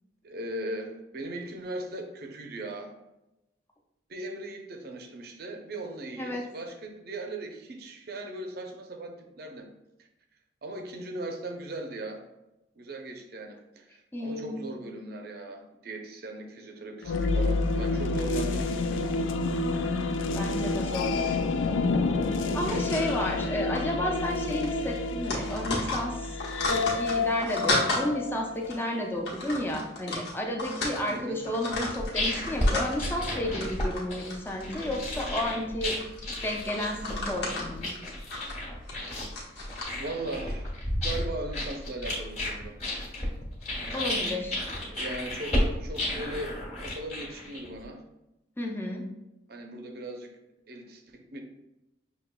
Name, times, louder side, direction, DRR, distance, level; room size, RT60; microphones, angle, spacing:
voice 1, 0.2-2.9 4.1-9.7 10.0-10.1 10.6-12.2 12.8-19.0 31.1-31.4 40.0-40.7 41.0-42.7 44.9-48.0 49.5-50.3 50.7-51.4, right 2 dB, 55° right, 3 dB, 0.6 m, -38 dB
voice 2, 14.1-14.5 20.4-21.4 22.5-26.4 26.7-36.0 36.4-37.9 43.9-44.6 48.6-49.1, left 1 dB, 10° left, 0 dB, 0.5 m, -32 dB
sound 1, 17.0-28.9, left 3 dB, 85° left, 0.4 m, -29 dB
sound 2, 22.7-23.5 23.7-23.9 24.2-24.4 24.6-28.1 28.6-28.8 29.2-31.2 31.4-33.1 33.5-34.0 34.3-35.4 36.0-39.8, left 2 dB, 60° left, 1.1 m, -33 dB
sound 3, 31.7-47.8, left 1 dB, 35° left, 1.3 m, -32 dB
6.3 x 2.9 x 2.2 m, 0.93 s
head